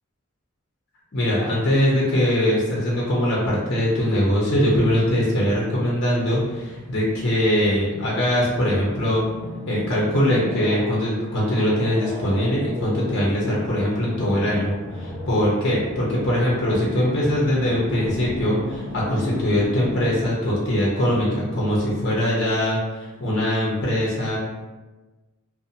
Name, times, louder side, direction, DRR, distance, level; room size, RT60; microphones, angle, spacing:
voice 1, 1.1-9.2 9.7-24.4, equal, 55° left, -5 dB, 0.6 m, -22 dB
sound 1, 6.1-20.3, left 1 dB, 40° right, 0.6 m, -36 dB
2.6 x 2.1 x 2.6 m, 1.2 s
head